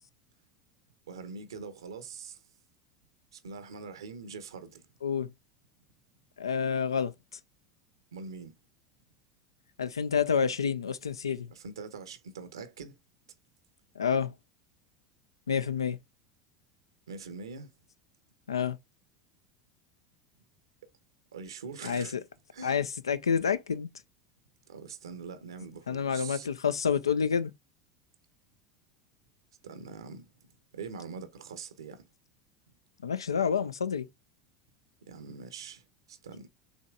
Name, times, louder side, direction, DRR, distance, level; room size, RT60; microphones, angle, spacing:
voice 1, 1.1-2.4 3.3-4.9 8.1-8.5 11.5-13.0 17.1-17.7 21.3-22.2 22.5-22.8 24.7-26.5 29.6-30.3 30.7-32.1 35.0-36.5, right 5 dB, 75° right, 0.7 m, -43 dB
voice 2, 5.0-5.3 6.4-7.1 9.8-11.5 14.0-14.3 15.5-16.0 18.5-18.8 21.8-22.2 22.6-23.9 25.9-27.5 33.0-34.1, left 6 dB, 80° left, 0.4 m, -28 dB
6.1 x 3.0 x 2.3 m
figure-of-eight pair, 75°, 2 cm